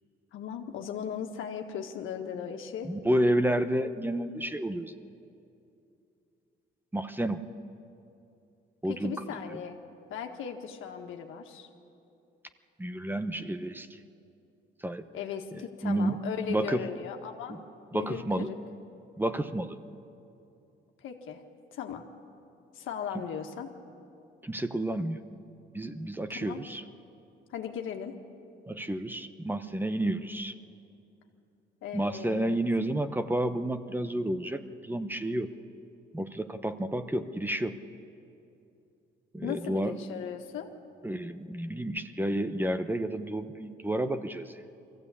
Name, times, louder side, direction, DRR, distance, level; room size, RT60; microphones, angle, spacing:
voice 1, 0.3-2.9 8.8-9.8 10.1-11.7 15.1-17.6 17.9-18.6 21.0-21.4 21.7-22.0 22.7-23.7 26.3-26.6 27.5-28.1 31.8-32.6 39.4-40.7, left 8 dB, 85° left, 4 dB, 1.7 m, -37 dB
voice 2, 2.8-4.9 6.9-7.4 8.8-9.2 9.5-9.6 12.8-14.0 14.8-15.1 15.5-16.2 16.5-16.8 17.5-17.6 17.9-18.5 19.2-19.8 24.4-25.2 25.7-26.8 28.7-30.5 31.9-35.5 36.1-37.8 39.3-39.9 41.0-44.6, right 1 dB, 10° right, 10 dB, 0.9 m, -30 dB
22.5 x 15.0 x 8.5 m, 2.7 s
cardioid pair, 90°, 20 cm